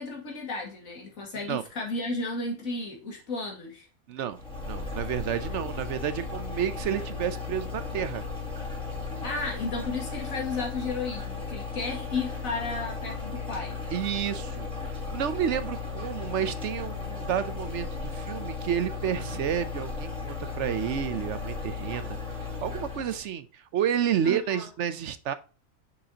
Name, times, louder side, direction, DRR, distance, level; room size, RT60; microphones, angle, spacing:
voice 1, 0.0-3.9 9.2-13.8 20.6-20.7 24.2-24.7, left 3 dB, 75° left, 2.5 m, -33 dB
voice 2, 4.1-8.2 13.9-22.2 22.5-25.3, right 9 dB, 65° right, 0.9 m, -30 dB
sound 1, 4.3-23.2, left 4 dB, 5° left, 2.1 m, -35 dB
6.4 x 5.8 x 2.8 m
omnidirectional pair, 1.4 m